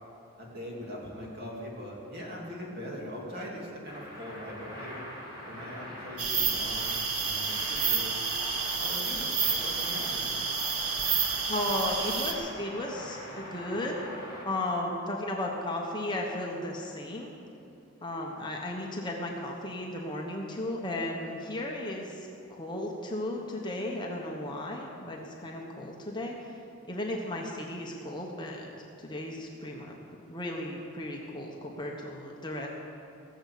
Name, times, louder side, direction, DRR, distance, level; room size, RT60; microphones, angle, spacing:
voice 1, 0.4-5.0 5.5-8.1 8.8-10.3, equal, 45° right, -3 dB, 2.8 m, -41 dB
sound 1, 3.9-14.4, equal, 20° right, 3.2 m, -42 dB
sound 2, 6.2-12.3, right 5 dB, 85° right, 1.4 m, -30 dB
voice 2, 11.4-14.0 14.4-17.3 18.0-26.6 26.9-28.7 29.0-30.0 30.3-32.7, left 1 dB, 20° left, -1 dB, 1.2 m, -35 dB
18.0 x 7.2 x 8.4 m, 2.6 s
head